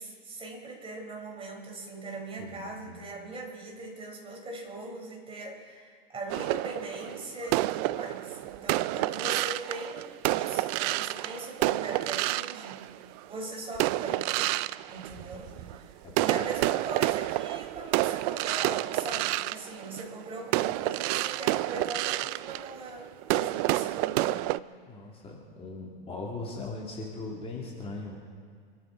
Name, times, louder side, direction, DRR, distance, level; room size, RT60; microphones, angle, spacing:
voice 1, 0.0-12.9 13.3-14.6 14.9-24.6 27.1-27.4, right 2 dB, 20° right, 0 dB, 4.4 m, -40 dB
voice 2, 2.4-3.1 15.2-15.7 16.0-16.5 24.9-28.2, left 3 dB, 20° left, -3 dB, 2.7 m, -40 dB
sound 1, 6.3-13.2 13.7-15.8 16.1-24.6, right 18 dB, 45° right, 0.4 m, -29 dB
27.0 x 13.0 x 4.0 m, 2.1 s
hypercardioid pair, 120°, 29 cm